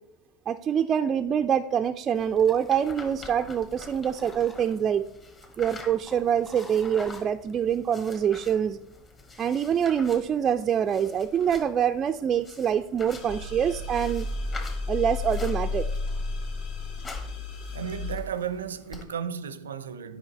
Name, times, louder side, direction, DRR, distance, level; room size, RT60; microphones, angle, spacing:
voice 1, 0.5-5.0 5.6-8.8 9.4-14.3 14.9-15.9, right 8 dB, 30° right, 0.3 m, -25 dB
sound 1, 1.9-3.8 4.1-4.9 5.4-7.7 8.0-8.3, left 1 dB, 15° left, 1.1 m, -49 dB
sound 2, 2.1-19.0, left 3 dB, 30° left, 1.5 m, -47 dB
sound 3, 13.1-18.2, left 3 dB, 55° left, 1.2 m, -32 dB
voice 2, 17.7-20.2, right 7 dB, 90° right, 0.5 m, -34 dB
9.7 x 5.1 x 4.1 m
hypercardioid pair, 95°, 0 cm